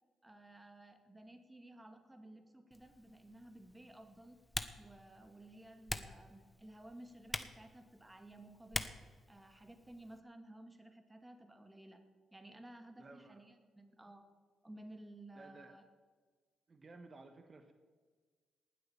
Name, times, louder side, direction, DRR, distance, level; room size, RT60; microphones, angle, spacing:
voice 1, 0.2-4.4 4.8-8.9 9.3-12.0 12.3-14.3 14.6-15.8, right 1 dB, 15° right, 6 dB, 2.3 m, -55 dB
Typing, 2.7-10.2, left 1 dB, 15° left, 1.3 m, -47 dB
voice 2, 13.0-13.4 15.3-15.8 16.7-17.7, right 3 dB, 40° right, 7 dB, 1.5 m, -56 dB
19.0 x 8.3 x 7.2 m, 1.5 s
supercardioid pair, 65°, 0 cm